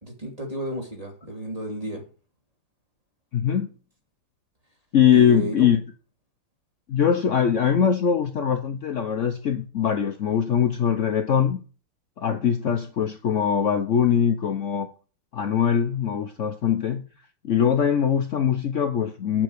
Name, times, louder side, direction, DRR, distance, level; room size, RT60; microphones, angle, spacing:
voice 1, 0.0-2.0 5.1-5.7, right 1 dB, 15° right, 0 dB, 2.8 m, -32 dB
voice 2, 3.3-3.7 4.9-5.8 6.9-11.6 12.2-14.9 15.3-17.1 17.4-19.4, left 8 dB, 75° left, 7 dB, 0.7 m, -22 dB
9.3 x 5.9 x 6.6 m, 0.37 s
omnidirectional pair, 2.3 m